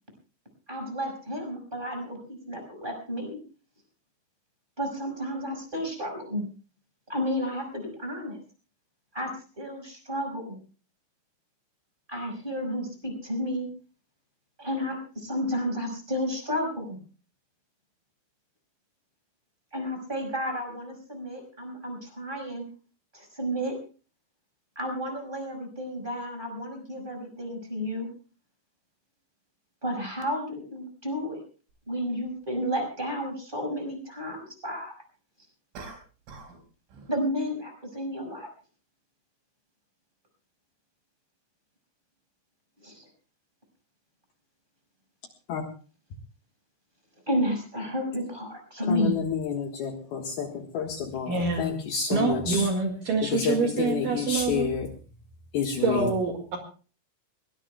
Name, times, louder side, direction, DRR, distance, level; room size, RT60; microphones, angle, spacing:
voice 1, 0.7-3.4 4.8-6.4 7.1-8.4 9.1-9.3 9.6-10.6 12.1-13.7 14.6-17.0 19.7-22.6 23.1-23.8 24.7-28.1 29.8-31.4 31.9-34.9 37.1-38.5 42.8-43.1 47.3-49.2, equal, 10° right, 4 dB, 5.2 m, -32 dB
sound 1, 31.7-31.8 35.7-36.6 36.9-37.2, right 3 dB, 85° right, 7.4 m, -44 dB
voice 2, 48.9-52.7 53.3-54.9 55.5-56.1, left 7 dB, 65° left, 3 dB, 3.0 m, -29 dB
voice 3, 51.3-51.7 52.1-54.7 55.8-56.6, right 4 dB, 55° right, 2 dB, 3.0 m, -26 dB
22.0 x 19.5 x 2.3 m, 0.37 s
omnidirectional pair, 5.5 m